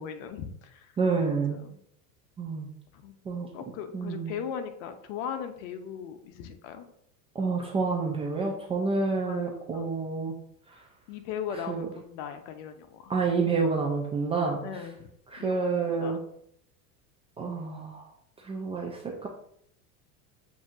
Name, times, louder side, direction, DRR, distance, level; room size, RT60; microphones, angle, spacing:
voice 1, 0.0-0.9 1.3-1.8 2.9-3.1 3.5-6.9 9.1-9.4 9.7-9.9 11.1-13.1 14.6-15.1 15.4-16.2, left 8 dB, 55° left, 8 dB, 0.8 m, -38 dB
voice 2, 1.0-1.6 2.4-2.7 3.3-3.5 3.9-4.3 7.4-10.3 10.7-10.8 11.7-11.9 13.1-14.6 15.3-16.2 17.4-18.1 18.4-19.3, right 4 dB, 15° right, -1 dB, 0.3 m, -28 dB
7.1 x 2.7 x 2.5 m, 0.70 s
hypercardioid pair, 105°, 44 cm